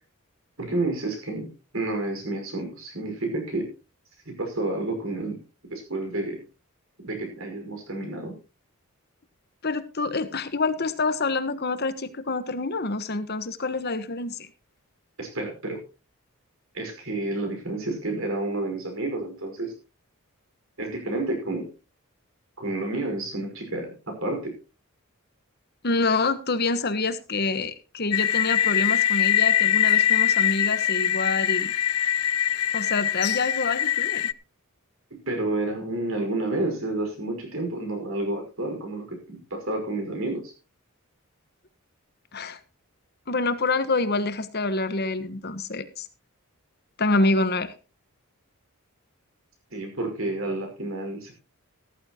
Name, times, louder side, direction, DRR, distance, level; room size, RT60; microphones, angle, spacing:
voice 1, 0.6-3.7 4.3-6.4 7.0-8.3 15.2-15.8 16.7-19.7 20.8-21.7 22.6-24.5 35.1-40.5 49.7-51.3, right 2 dB, 65° right, 4 dB, 5.3 m, -30 dB
voice 2, 9.6-14.5 25.8-31.7 32.7-34.3 42.3-42.6 43.3-46.1 47.0-47.7, left 3 dB, 45° left, 12 dB, 1.3 m, -27 dB
sound 1, 28.1-34.3, left 11 dB, 85° left, 0.5 m, -23 dB
14.5 x 14.0 x 3.0 m, 0.32 s
head